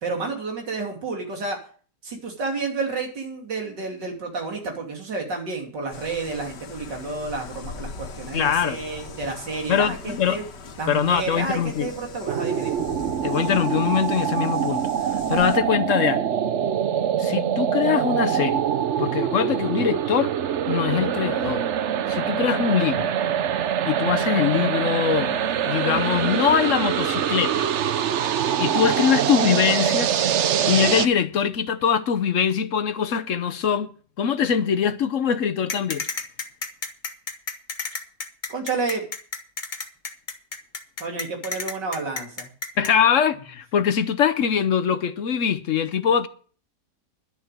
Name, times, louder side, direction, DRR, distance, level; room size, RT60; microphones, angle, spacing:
voice 1, 0.0-1.6 2.0-10.4 10.8-12.8 38.5-39.1 41.0-42.5, right 3 dB, 85° right, 3.5 m, -30 dB
sound 1, 5.9-15.6, left 5 dB, 90° left, 1.9 m, -41 dB
voice 2, 8.3-8.8 9.7-10.4 10.9-11.9 13.2-14.9 15.1-16.3 17.2-18.7 19.0-20.3 20.7-21.6 22.1-23.1 23.9-25.4 25.7-27.7 28.6-30.1 30.7-36.0 42.8-46.3, left 8 dB, 55° left, 1.0 m, -22 dB
sound 2, 12.3-31.1, right 9 dB, 60° right, 0.8 m, -24 dB
sound 3, 35.7-42.9, left 4 dB, 30° left, 1.2 m, -31 dB
11.0 x 6.8 x 8.9 m
omnidirectional pair, 1.8 m